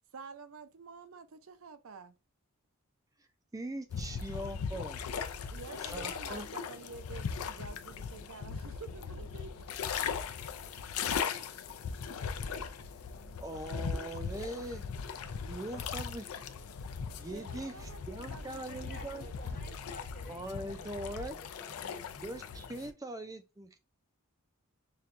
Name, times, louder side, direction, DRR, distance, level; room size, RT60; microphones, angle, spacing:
voice 1, 0.1-2.1 5.3-9.5 15.2-15.5 17.3-19.9, right 4 dB, 70° right, 0.5 m, -50 dB
voice 2, 3.5-5.0 5.8-6.5 12.6-12.7 13.4-14.8 15.4-16.3 17.2-19.3 20.2-21.4 22.2-23.8, right 1 dB, 15° right, 0.4 m, -41 dB
sound 1, 3.9-22.9, left 6 dB, 80° left, 0.4 m, -39 dB
voice 3, 18.7-22.1, left 3 dB, 40° left, 1.0 m, -54 dB
5.8 x 2.2 x 2.5 m
head